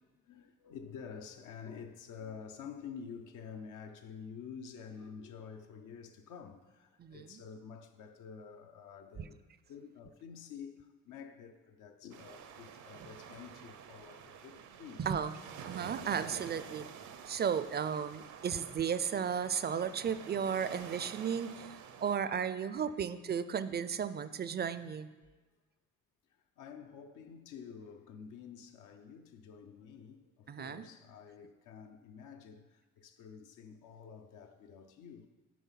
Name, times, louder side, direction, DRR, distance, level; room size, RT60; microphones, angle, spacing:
voice 1, 0.2-9.4 9.7-15.2 16.9-17.0 21.6-21.7 25.2-25.4 26.6-35.3, left 6 dB, 80° left, 0.8 m, -49 dB
voice 2, 7.0-7.4 15.0-15.3 15.6-16.9 17.3-25.1 30.5-30.8, right 7 dB, 35° right, 0.4 m, -34 dB
sound 1, 12.1-22.2, right 7 dB, 70° right, 0.7 m, -49 dB
9.3 x 4.1 x 5.7 m
cardioid pair, 90°, 30 cm